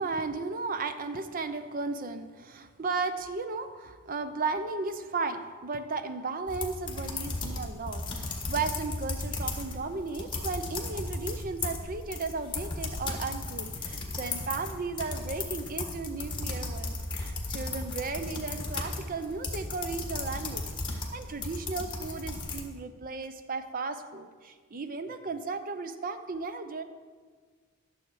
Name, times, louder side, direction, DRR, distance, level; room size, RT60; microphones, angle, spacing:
voice 1, 0.0-26.8, right 4 dB, 40° right, 9 dB, 0.6 m, -35 dB
sound 1, 6.5-9.8 10.1-22.6, left 3 dB, 25° left, 1.4 m, -35 dB
12.5 x 7.1 x 4.7 m, 1.5 s
head